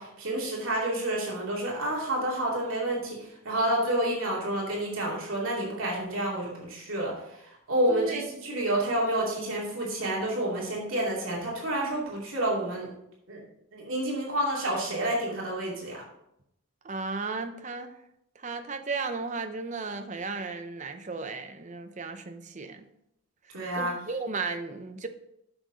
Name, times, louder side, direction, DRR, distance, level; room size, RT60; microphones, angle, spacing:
voice 1, 0.0-3.2 3.4-7.1 7.4-12.9 13.3-13.4 13.7-16.0 23.5-23.9, right 1 dB, 70° right, -3 dB, 2.6 m, -29 dB
voice 2, 7.9-8.2 16.8-17.9 18.4-22.8 23.7-25.1, right 4 dB, 35° right, 7 dB, 0.7 m, -35 dB
8.7 x 6.6 x 3.9 m, 0.79 s
head